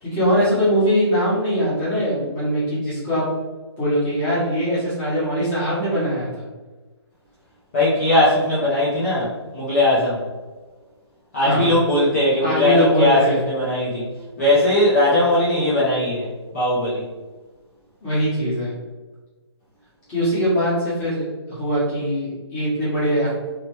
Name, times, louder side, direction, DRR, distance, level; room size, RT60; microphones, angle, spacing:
voice 1, 0.0-3.2 3.8-6.4 11.4-11.7 12.4-13.4 18.0-18.7 20.1-23.3, equal, 10° left, -11 dB, 1.3 m, -21 dB
voice 2, 7.7-10.2 11.3-14.1 14.4-16.3 16.5-17.0, left 1 dB, 30° left, -10 dB, 0.8 m, -19 dB
3.1 x 2.9 x 3.1 m, 1.3 s
hypercardioid pair, 170°, 15 cm